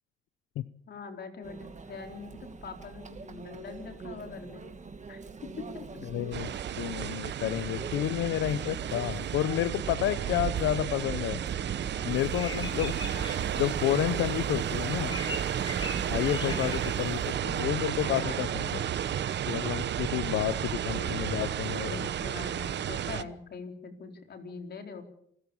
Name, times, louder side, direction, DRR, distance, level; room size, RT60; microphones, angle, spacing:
voice 1, 0.9-4.6 5.1-6.1 13.0-13.3 16.3-16.7 18.0-18.4 20.5-25.0, left 5 dB, 55° left, 5 dB, 4.3 m, -43 dB
Conversation / Chatter / Crowd, 1.4-19.8, right 4 dB, 35° right, 2.4 m, -44 dB
voice 2, 6.1-6.5 6.8-11.4 12.0-13.0 13.6-15.2 16.1-18.8 19.5-22.0, left 13 dB, 85° left, 14 dB, 0.8 m, -30 dB
sound 1, 6.3-23.2, right 10 dB, 60° right, 1.1 m, -32 dB
sound 2, 12.1-17.3, equal, 25° left, 6.8 m, -40 dB
27.5 x 14.5 x 7.2 m, 0.71 s
cardioid pair, 90°, 20 cm